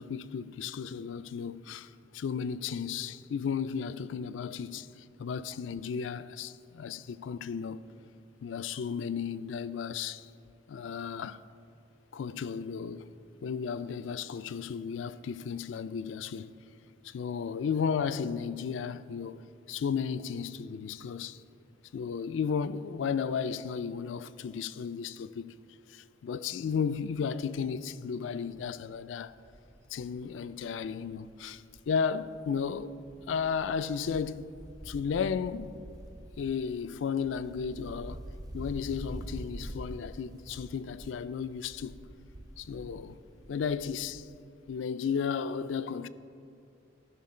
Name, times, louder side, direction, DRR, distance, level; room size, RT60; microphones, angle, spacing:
voice 1, 0.0-4.9 5.2-7.9 8.4-10.3 10.7-11.4 12.1-13.1 13.4-16.5 17.0-21.4 21.9-25.5 25.9-29.3 29.9-32.9 33.3-34.5 34.9-35.8 36.4-38.2 38.5-42.0 42.6-43.2 43.5-44.3 44.7-46.1, left 6 dB, 75° left, 0.4 m, -34 dB
Wind, 27.4-27.7 28.0-28.1 28.4-32.0 32.2-44.4 44.7-44.8, right 1 dB, 20° right, 0.4 m, -46 dB
15.5 x 5.9 x 4.3 m
head